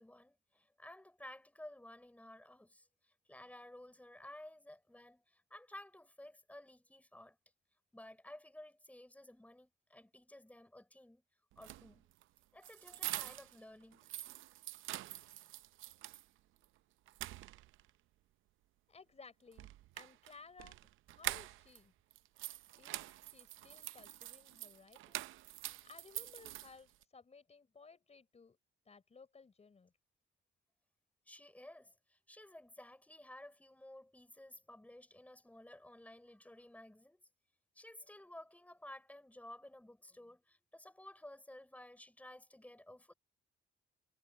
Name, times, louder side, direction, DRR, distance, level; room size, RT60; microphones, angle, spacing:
voice 1, 0.0-7.4 7.9-11.2 11.6-12.1 12.5-14.1 31.3-37.3 37.7-43.1, left 1 dB, 5° left, 6.3 m, -55 dB
sound 1, 11.5-13.6 13.9-16.3 16.6-16.7 17.1-17.9 19.5-21.8 22.1-27.0, right 15 dB, 85° right, 0.6 m, -45 dB
voice 2, 18.9-19.7 19.9-20.8 21.1-21.9 22.8-25.3 25.8-28.6 28.9-29.9, left 4 dB, 35° left, 4.4 m, -59 dB
cardioid pair, 90°, 20 cm